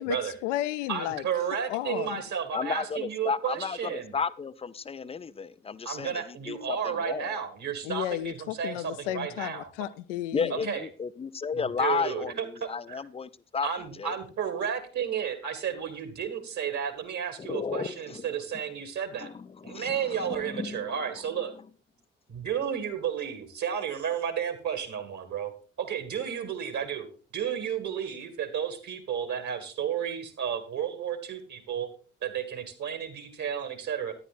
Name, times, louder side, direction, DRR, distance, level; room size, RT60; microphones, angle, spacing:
voice 1, 0.0-1.3 1.7-2.2 7.8-10.7, left 14 dB, 70° left, 16 dB, 0.6 m, -33 dB
voice 2, 0.9-4.1 5.9-9.7 10.5-10.9 11.5-13.0 13.6-19.3 19.6-21.5 22.3-25.5 25.8-31.9 32.2-34.1, right 8 dB, 50° right, 9 dB, 1.9 m, -32 dB
voice 3, 2.5-7.4 10.3-13.7 14.0-14.1 17.4-18.3 19.2-21.0, left 5 dB, 15° left, 16 dB, 0.4 m, -33 dB
13.5 x 9.9 x 2.5 m, 0.37 s
figure-of-eight pair, 40°, 37 cm